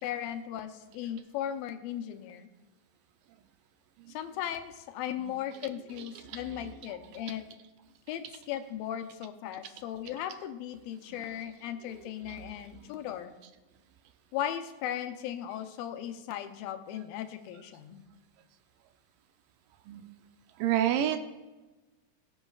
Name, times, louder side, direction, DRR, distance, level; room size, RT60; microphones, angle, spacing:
voice 1, 0.0-2.5 4.1-7.4 8.1-13.3 14.3-18.0, left 10 dB, 90° left, 8 dB, 2.5 m, -37 dB
voice 2, 6.0-6.8 7.1-7.4 11.1-11.2 12.0-12.4 19.9-20.0 20.6-21.2, right 11 dB, 80° right, 8 dB, 2.1 m, -31 dB
19.5 x 8.1 x 2.4 m, 1.2 s
omnidirectional pair, 4.1 m